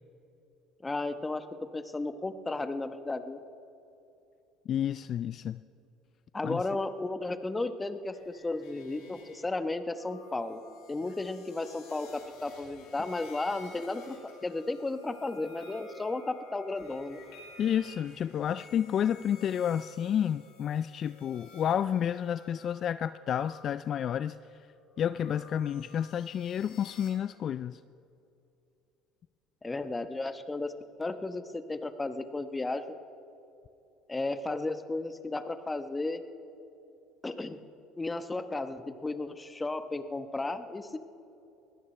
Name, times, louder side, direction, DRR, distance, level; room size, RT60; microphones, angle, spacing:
voice 1, 0.8-1.5 1.7-3.4 6.3-10.6 10.9-14.2 14.4-17.2 29.6-30.7 31.0-32.8 34.1-36.2 37.2-37.6 38.0-41.0, left 2 dB, 15° left, 9 dB, 1.0 m, -34 dB
voice 2, 4.7-5.6 6.4-6.6 17.6-24.4 25.0-27.8, left 9 dB, 50° left, 14 dB, 0.3 m, -30 dB
sound 1, 8.1-23.6 24.5-27.1, left 3 dB, 80° left, 4.6 m, -53 dB
22.0 x 17.5 x 3.3 m, 2.8 s
supercardioid pair, 90°, 0 cm